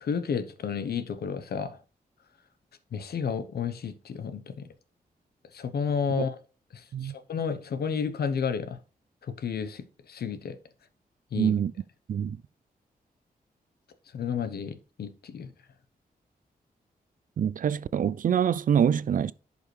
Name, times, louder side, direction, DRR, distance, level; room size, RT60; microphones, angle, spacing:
voice 1, 0.0-1.8 2.9-4.7 5.5-6.4 6.7-8.8 9.2-10.6 11.3-11.6 14.1-15.5, left 6 dB, 80° left, 1.0 m, -31 dB
voice 2, 11.3-11.7 12.1-12.4 17.4-19.3, right 8 dB, 55° right, 0.4 m, -25 dB
10.5 x 5.5 x 3.2 m
cardioid pair, 80°, 16 cm